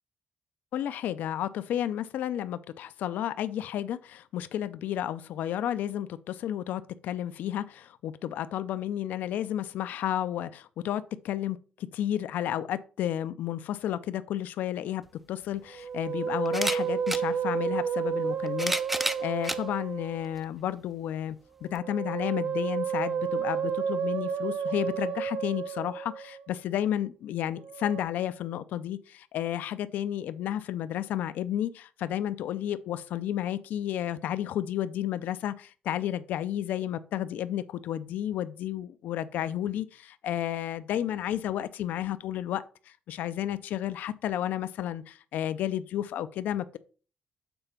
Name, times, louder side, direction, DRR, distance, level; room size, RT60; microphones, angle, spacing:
voice 1, 0.7-15.0 15.3-21.4 21.6-46.8, left 11 dB, 75° left, 0.4 m, -32 dB
sound 1, 15.1-15.2 16.5-17.3 18.3-19.6 20.4-20.5 21.8-21.9, right 1 dB, 5° right, 0.3 m, -31 dB
Musical instrument, 15.7-20.3 21.6-26.5 27.6-28.0, right 7 dB, 75° right, 0.7 m, -31 dB
6.9 x 4.4 x 5.7 m
cardioid pair, 170°, 3 cm